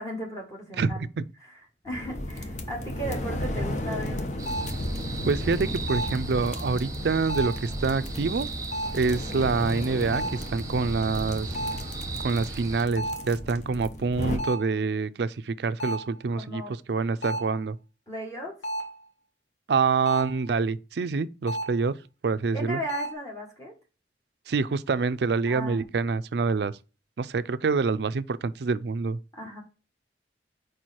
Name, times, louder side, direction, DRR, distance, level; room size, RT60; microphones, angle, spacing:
voice 1, 0.0-1.1 1.4-4.2 16.3-16.7 18.1-18.6 22.5-23.7 25.5-25.9 29.3-29.6, equal, 20° left, 1.7 m, -36 dB
voice 2, 0.8-1.2 5.3-8.5 8.9-11.6 12.2-16.6 16.9-17.8 19.7-21.9 22.2-22.8 24.5-26.7 27.2-29.2, right 4 dB, 65° right, 0.4 m, -26 dB
sound 1, 1.9-14.4, left 1 dB, 40° left, 0.9 m, -34 dB
sound 2, 4.4-12.8, right 3 dB, 20° right, 1.0 m, -37 dB
sound 3, 4.5-4.8 5.9-6.3 7.3-7.7 8.7-9.1 10.1-10.5 11.5-11.9 13.0-13.4 14.4-14.8 15.8-16.2 17.2-17.6 18.6-19.0 20.1-20.4 21.5-21.8 22.9-23.1, right 1 dB, 85° left, 1.4 m, -32 dB
4.8 x 4.6 x 4.2 m
head